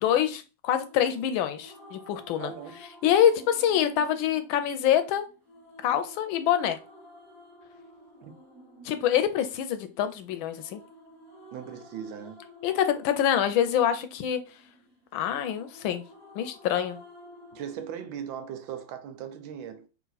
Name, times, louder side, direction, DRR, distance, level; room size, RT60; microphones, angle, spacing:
voice 1, 0.0-2.5 3.0-5.2 5.8-6.8 8.8-10.8 12.6-14.4 15.1-16.0 16.3-17.0, left 10 dB, 85° left, 1.4 m, -25 dB
sound 1, 0.7-17.8, equal, 15° right, 1.3 m, -52 dB
voice 2, 2.4-2.8 8.2-8.3 11.5-12.5 17.5-19.9, right 8 dB, 80° right, 1.4 m, -38 dB
3.6 x 2.8 x 3.9 m
omnidirectional pair, 2.1 m